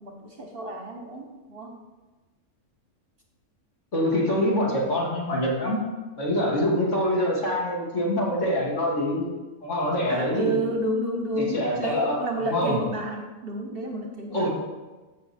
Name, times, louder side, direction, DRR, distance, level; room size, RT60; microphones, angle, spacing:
voice 1, 0.0-1.8 10.1-14.5, right 1 dB, 45° right, 2 dB, 1.0 m, -30 dB
voice 2, 3.9-5.8 6.2-9.2 9.6-10.6 11.4-12.8 14.3-14.5, left 1 dB, 55° left, -4 dB, 2.7 m, -25 dB
14.5 x 5.9 x 4.2 m, 1.2 s
omnidirectional pair, 1.6 m